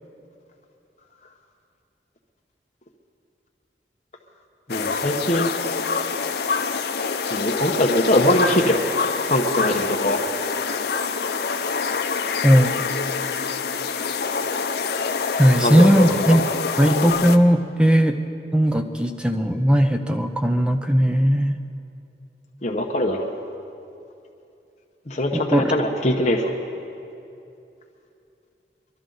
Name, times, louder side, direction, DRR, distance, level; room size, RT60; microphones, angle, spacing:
sound 1, 4.7-17.4, left 5 dB, 65° left, 0.6 m, -26 dB
voice 1, 4.7-5.5 7.3-10.2 15.6-16.4 22.6-23.3 25.1-26.5, left 1 dB, 40° left, 1 dB, 0.8 m, -22 dB
voice 2, 15.4-16.4 16.8-18.2 18.5-21.6 25.3-25.7, equal, 5° right, 5 dB, 0.6 m, -17 dB
23.0 x 12.5 x 3.9 m, 2.7 s
head